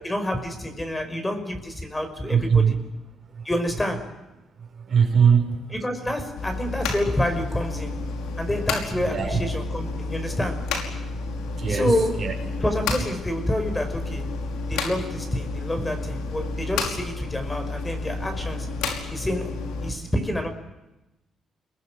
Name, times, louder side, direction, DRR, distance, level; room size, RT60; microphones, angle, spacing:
voice 1, 0.0-2.8 3.4-4.1 5.7-8.0 8.4-10.7 11.7-12.2 12.6-14.3 14.7-18.7 19.1-19.5 19.8-20.5, left 1 dB, 15° left, 6 dB, 5.7 m, -28 dB
voice 2, 2.3-2.7 4.9-5.5 9.1-9.4 11.6-11.9 12.2-12.3, right 7 dB, 50° right, 5 dB, 6.8 m, -19 dB
sound 1, 6.4-19.9, left 3 dB, 90° left, 5.3 m, -31 dB
29.5 x 22.5 x 7.7 m, 0.98 s
cardioid pair, 90°, 0 cm